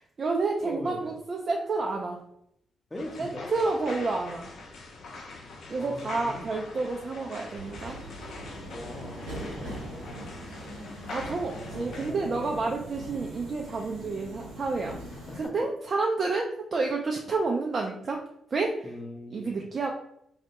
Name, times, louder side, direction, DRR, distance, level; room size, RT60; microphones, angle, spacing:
voice 1, 0.0-2.2 3.2-4.5 5.7-8.0 11.1-15.0 15.4-18.2 18.5-18.9 19.3-19.9, right 3 dB, 50° right, 1 dB, 0.3 m, -29 dB
voice 2, 0.6-1.1 2.9-3.6 5.8-6.5 8.6-10.3 11.5-12.9 15.3-15.5 18.8-19.6, left 1 dB, 20° left, 2 dB, 0.6 m, -41 dB
sound 1, 3.0-12.1, left 3 dB, 65° left, 0.5 m, -43 dB
Subway metro underground, 7.6-15.5, right 1 dB, 85° right, 0.8 m, -41 dB
2.2 x 2.1 x 2.8 m, 0.74 s
hypercardioid pair, 40°, 0 cm